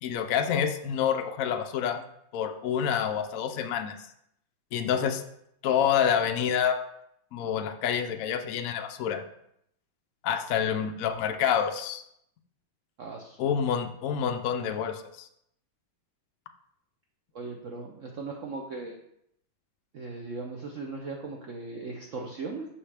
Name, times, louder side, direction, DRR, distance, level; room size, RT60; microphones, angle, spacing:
voice 1, 0.0-2.0 2.3-4.0 4.7-5.2 5.6-6.8 7.3-9.2 10.2-12.0 13.4-15.3, left 8 dB, 85° left, 6 dB, 0.7 m, -27 dB
voice 2, 13.0-13.4 17.3-18.9 19.9-22.7, right 3 dB, 80° right, 1 dB, 0.7 m, -38 dB
6.4 x 5.6 x 3.3 m, 0.75 s
omnidirectional pair, 2.2 m